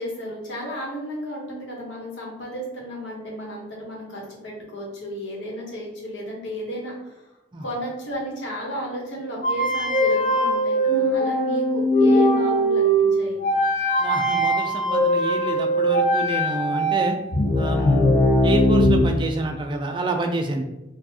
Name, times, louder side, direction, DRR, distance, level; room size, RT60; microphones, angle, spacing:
voice 1, 0.0-7.3 7.6-13.4, equal, 90° left, -3 dB, 1.2 m, -33 dB
sound 1, 9.4-19.0, equal, 50° left, 0.6 m, -20 dB
voice 2, 14.0-17.2 17.6-20.6, right 2 dB, 25° right, 4 dB, 0.4 m, -28 dB
4.5 x 2.3 x 2.9 m, 0.96 s
head